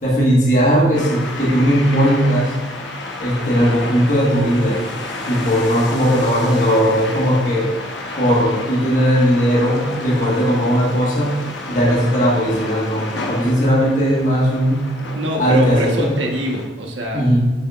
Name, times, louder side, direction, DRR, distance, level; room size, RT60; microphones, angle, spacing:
voice 1, 0.0-2.5 3.2-4.8 5.3-7.7 8.1-11.4 11.7-14.9 15.4-16.1 17.1-17.4, equal, 45° left, -5 dB, 1.6 m, -17 dB
sound 1, 0.9-16.7, left 2 dB, 75° left, 1.0 m, -31 dB
voice 2, 15.1-17.2, equal, 85° right, 0 dB, 1.3 m, -24 dB
8.6 x 6.7 x 2.5 m, 1.3 s
head